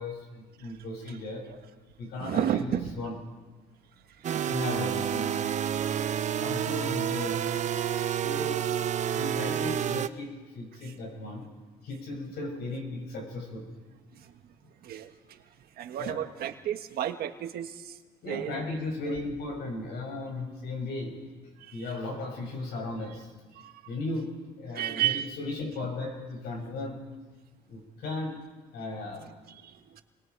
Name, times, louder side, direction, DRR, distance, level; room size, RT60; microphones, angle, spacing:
voice 1, 0.0-1.5 2.0-3.1 4.5-5.5 6.3-7.4 8.2-8.7 9.1-11.5 11.8-13.7 16.0-16.2 18.2-21.1 21.7-23.3 23.9-27.0 27.7-28.4 28.7-29.3, left 2 dB, 75° left, 2 dB, 6.6 m, -36 dB
voice 2, 2.2-2.9 4.2-4.5 10.8-10.9 14.1-14.3 14.8-15.4 15.8-18.0 18.3-18.8 21.6-21.8 23.5-23.7 24.7-25.3 29.5-30.0, right 11 dB, 65° right, 7 dB, 1.5 m, -32 dB
sound 1, 4.2-10.1, right 9 dB, 45° right, 0.8 m, -29 dB
28.5 x 22.5 x 4.7 m, 1.3 s
cardioid pair, 110°, 17 cm